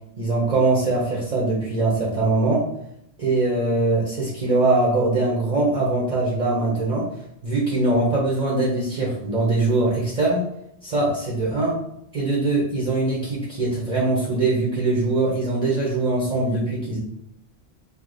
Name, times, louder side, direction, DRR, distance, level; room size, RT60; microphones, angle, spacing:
voice 1, 0.2-2.7 3.2-7.1 7.4-10.5 10.8-11.8 12.1-17.0, right 2 dB, 40° right, -4 dB, 1.0 m, -22 dB
4.9 x 2.4 x 4.0 m, 0.75 s
omnidirectional pair, 1.1 m